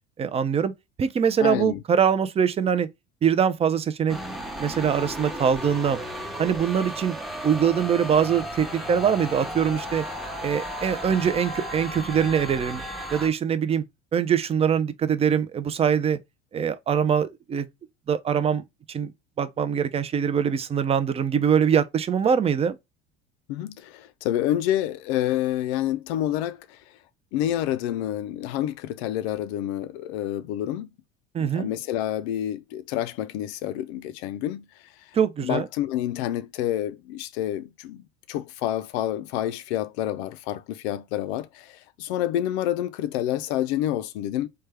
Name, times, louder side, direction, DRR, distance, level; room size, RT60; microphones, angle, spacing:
voice 1, 0.2-0.7 1.0-2.9 3.2-4.2 4.6-6.0 6.4-7.2 7.4-10.0 10.4-12.8 13.1-13.8 14.1-16.2 16.5-17.7 18.1-19.1 19.4-22.8 31.3-31.7 35.1-35.7, right 7 dB, 20° right, 0.3 m, -23 dB
voice 2, 1.4-1.8 23.5-26.8 27.3-30.9 31.4-34.6 35.4-44.5, left 12 dB, 75° left, 0.5 m, -28 dB
sound 1, 4.1-13.3, equal, ahead, 0.7 m, -34 dB
3.2 x 2.2 x 3.3 m
hypercardioid pair, 85°, 33 cm